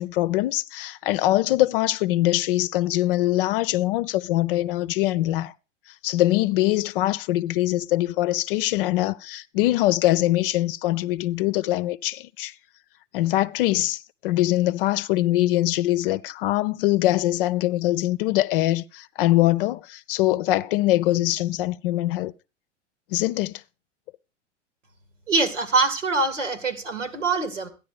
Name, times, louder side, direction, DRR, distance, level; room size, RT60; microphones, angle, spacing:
voice 1, 0.0-5.5 6.0-12.5 13.1-22.3 23.1-23.6, left 16 dB, 50° left, 0.7 m, -23 dB
voice 2, 25.3-27.7, right 3 dB, 80° right, 2.3 m, -24 dB
13.5 x 10.5 x 5.0 m
figure-of-eight pair, 95°, 36 cm